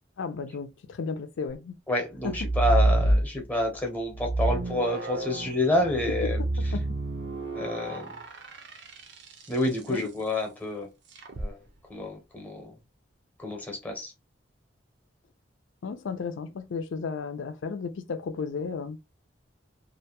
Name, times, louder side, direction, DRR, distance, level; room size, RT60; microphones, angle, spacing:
voice 1, 0.2-1.8 2.2-2.3 6.7-6.9 9.9-10.1 15.8-19.0, left 5 dB, 80° left, 0.4 m, -34 dB
voice 2, 1.9-6.7 7.5-8.2 9.5-10.9 11.4-11.6 11.9-12.8 13.4-14.1, left 1 dB, 10° left, 0.7 m, -29 dB
sound 1, 2.2-3.7 4.1-9.6 11.2-11.5, right 2 dB, 65° right, 0.6 m, -28 dB
2.5 x 2.2 x 2.8 m
head